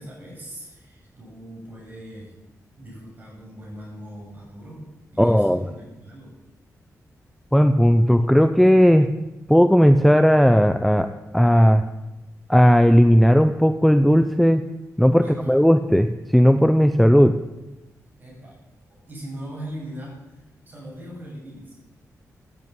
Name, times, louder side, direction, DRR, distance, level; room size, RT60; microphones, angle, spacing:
voice 1, 0.0-2.3 2.8-6.4 15.2-15.6 18.2-18.6 18.9-21.7, right 1 dB, 35° right, -2 dB, 7.9 m, -40 dB
voice 2, 5.2-5.6 7.5-9.1 9.5-11.8 12.5-14.6 15.0-17.4, equal, ahead, 9 dB, 0.6 m, -16 dB
15.0 x 10.5 x 9.3 m, 1.0 s
wide cardioid pair, 150°, 6 cm